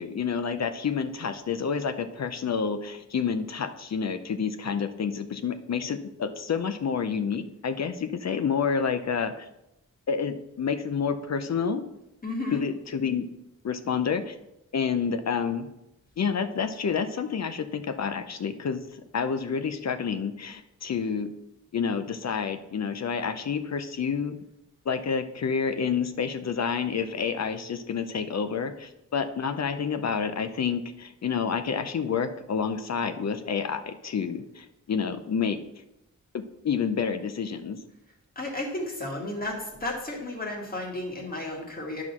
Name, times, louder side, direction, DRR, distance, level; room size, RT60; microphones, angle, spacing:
voice 1, 0.0-9.5 10.1-11.8 12.5-13.3 13.6-14.3 14.7-15.7 16.2-18.8 19.1-21.3 21.7-24.4 24.9-35.6 36.3-37.8, left 6 dB, 60° left, 9 dB, 0.6 m, -29 dB
voice 2, 12.2-12.6 38.4-42.0, left 2 dB, 30° left, -1 dB, 2.0 m, -33 dB
9.7 x 3.9 x 6.0 m, 0.88 s
wide cardioid pair, 115°, 31 cm